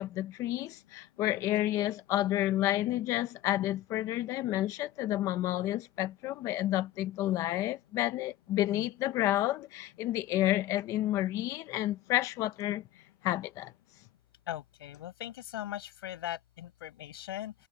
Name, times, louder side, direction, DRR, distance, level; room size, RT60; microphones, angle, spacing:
voice 1, 0.0-12.8 13.2-13.7, left 14 dB, 25° left, 0.6 m, -30 dB
voice 2, 14.5-17.5, left 13 dB, 80° left, 5.5 m, -40 dB
supercardioid pair, 170°, 12 cm